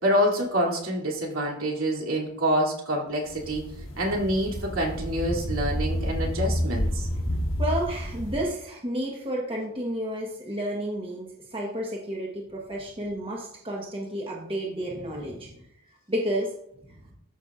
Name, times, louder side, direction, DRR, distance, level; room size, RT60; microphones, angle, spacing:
voice 1, 0.0-3.6 4.0-7.1, equal, 75° right, -1 dB, 2.7 m, -26 dB
sound 1, 3.3-8.5, equal, 65° left, 1.2 m, -29 dB
voice 2, 7.6-15.5 16.1-16.5, right 1 dB, 25° right, -2 dB, 1.2 m, -31 dB
13.5 x 5.9 x 2.5 m, 0.74 s
head